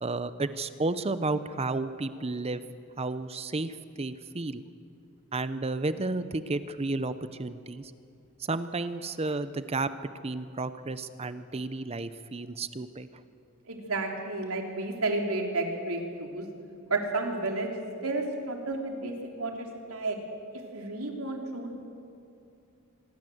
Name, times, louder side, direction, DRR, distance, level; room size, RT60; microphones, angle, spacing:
voice 1, 0.0-2.6 3.0-4.6 5.3-7.1 7.4-7.9 8.4-9.9 10.2-13.1, right 3 dB, 30° right, 12 dB, 0.7 m, -32 dB
voice 2, 13.7-16.5 16.9-17.7 18.0-20.2 20.7-21.7, right 2 dB, 90° right, 2 dB, 3.5 m, -31 dB
25.5 x 20.5 x 7.9 m, 2.6 s
head